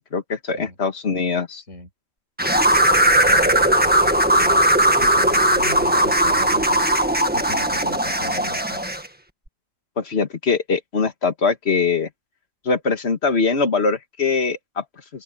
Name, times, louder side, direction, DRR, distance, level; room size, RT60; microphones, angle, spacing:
voice 1, 0.1-1.6 10.0-12.1 12.7-14.8, left 4 dB, 50° left, 1.9 m, -22 dB
sound 1, 2.4-9.1, right 1 dB, 5° right, 1.5 m, -18 dB
voice 2, 3.2-4.1 4.4-4.6 5.0-8.8, left 1 dB, 70° left, 7.5 m, -37 dB
open air
omnidirectional pair, 1.4 m